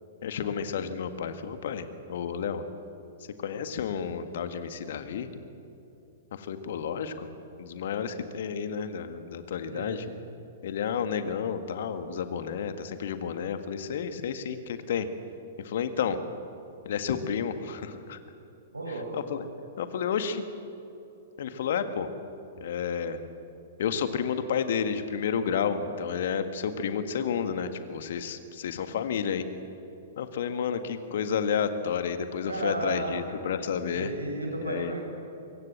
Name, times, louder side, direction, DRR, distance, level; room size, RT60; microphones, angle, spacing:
voice 1, 0.2-1.8 2.1-2.6 3.4-5.3 6.3-7.3 7.6-10.0 10.6-15.1 15.6-16.2 16.9-18.2 19.1-19.4 19.8-20.4 21.4-22.1 22.6-23.2 23.8-29.5 30.2-34.1 34.6-34.9, left 7 dB, 55° left, 9 dB, 1.8 m, -31 dB
voice 2, 9.6-10.0 18.7-19.2 32.5-33.4 33.9-35.0, right 2 dB, 75° right, 0 dB, 7.4 m, -34 dB
24.5 x 22.5 x 7.5 m, 2.9 s
figure-of-eight pair, 105°, 0 cm